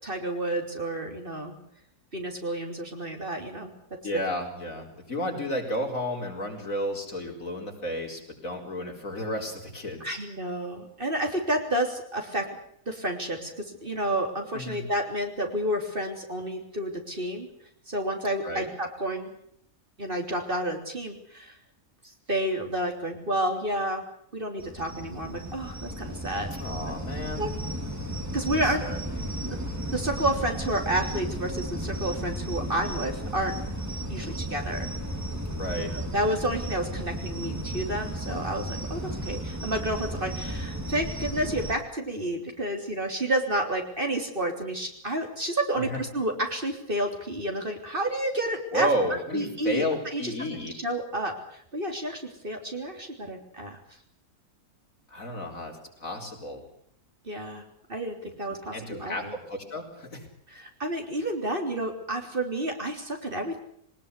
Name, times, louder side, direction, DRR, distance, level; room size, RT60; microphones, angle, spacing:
voice 1, 0.0-1.5 2.1-3.7 10.0-12.5 12.9-17.5 17.9-19.3 20.0-21.6 22.3-24.0 24.3-26.5 27.4-27.5 28.3-28.8 29.4-29.6 29.9-33.6 34.1-34.9 35.9-48.9 49.3-49.9 50.1-50.3 50.8-53.8 57.3-57.6 57.9-59.3 60.5-63.6, right 1 dB, 35° right, 3 dB, 3.6 m, -30 dB
voice 2, 4.0-10.2 14.5-14.8 18.4-18.7 26.5-27.5 28.4-29.0 35.6-36.0 45.7-46.0 48.7-50.7 55.1-56.6 58.7-60.3, equal, 60° left, 1 dB, 5.0 m, -32 dB
sound 1, 24.6-41.7, right 1 dB, 10° right, 2.7 m, -34 dB
22.5 x 19.5 x 8.3 m, 0.68 s
omnidirectional pair, 1.6 m